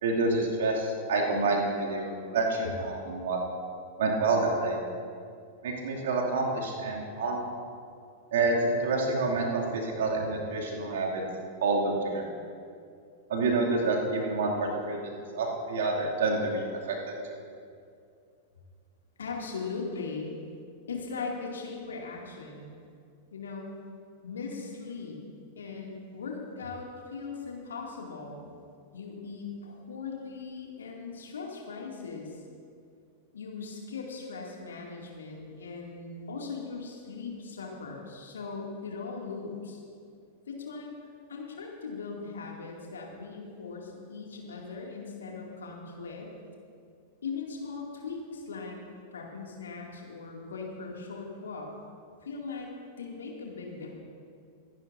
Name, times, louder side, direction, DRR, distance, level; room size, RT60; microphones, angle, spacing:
voice 1, 0.0-3.4 4.0-4.8 5.6-7.4 8.3-11.2 11.6-12.4 13.3-17.1, right 3 dB, 60° right, -2 dB, 2.4 m, -28 dB
voice 2, 19.2-20.3 20.9-22.8 23.3-23.7 24.2-25.2 25.6-28.5 28.9-32.4 33.3-39.8 40.5-40.9 41.3-46.3 47.2-48.8 49.1-51.7 52.2-52.7 53.0-53.9, left 4 dB, 70° left, -1 dB, 2.3 m, -39 dB
24.5 x 11.5 x 2.6 m, 2.4 s
figure-of-eight pair, 90°, 0 cm